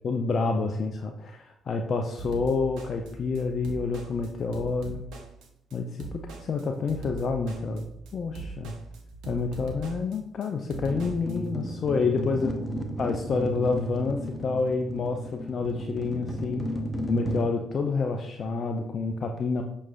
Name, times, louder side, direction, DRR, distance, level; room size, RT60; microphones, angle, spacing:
voice 1, 0.0-5.0 5.7-7.9 8.1-8.7 9.3-12.5 13.0-16.7 17.1-19.6, left 4 dB, 50° left, 3 dB, 0.3 m, -28 dB
sound 1, 2.2-11.4, right 3 dB, 65° right, 0.6 m, -41 dB
sound 2, 10.8-17.4, right 1 dB, 5° left, 0.7 m, -34 dB
5.9 x 2.3 x 2.3 m, 0.79 s
figure-of-eight pair, 45°, 0 cm